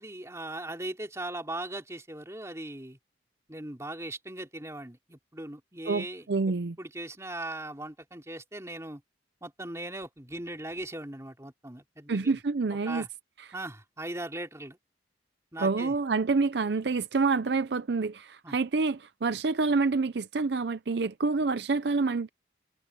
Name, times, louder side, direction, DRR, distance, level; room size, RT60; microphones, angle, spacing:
voice 1, 0.0-3.0 3.5-9.0 9.4-12.4 12.8-13.1 13.5-14.8 15.5-15.9 18.4-18.6, right 1 dB, 15° right, 2.9 m, -39 dB
voice 2, 5.9-6.8 12.1-13.1 15.6-22.3, right 4 dB, 65° right, 0.5 m, -27 dB
head